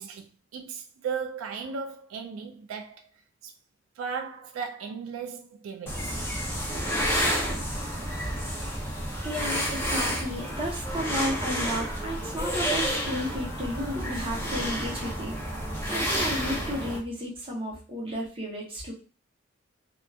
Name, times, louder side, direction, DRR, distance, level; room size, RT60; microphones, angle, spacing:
voice 1, 0.0-3.5 4.0-6.2 7.6-7.9 9.3-9.5 13.0-13.3 14.6-15.0, right 6 dB, 85° right, 0.3 m, -37 dB
sound 1, 5.9-17.0, equal, 10° left, 0.6 m, -30 dB
voice 2, 9.2-18.9, equal, 25° right, 0.8 m, -33 dB
2.7 x 2.2 x 2.3 m
head